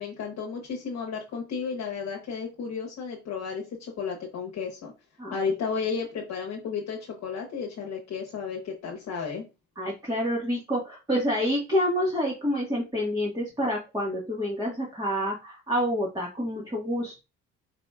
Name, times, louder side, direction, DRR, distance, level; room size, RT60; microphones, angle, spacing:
voice 1, 0.0-4.9 5.3-9.4, left 5 dB, 65° left, -1 dB, 1.1 m, -33 dB
voice 2, 9.8-17.2, equal, 15° right, -4 dB, 1.6 m, -28 dB
4.8 x 4.0 x 2.4 m, 0.28 s
cardioid pair, 90°, 30 cm